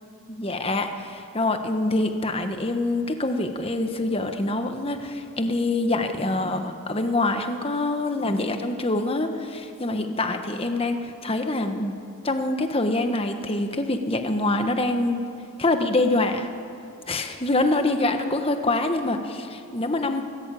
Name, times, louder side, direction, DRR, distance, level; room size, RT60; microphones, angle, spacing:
voice 1, 0.3-11.9 12.2-15.2 15.6-16.5 17.1-20.2, left 2 dB, 25° left, 6 dB, 1.4 m, -25 dB
24.0 x 16.5 x 8.5 m, 2.6 s
head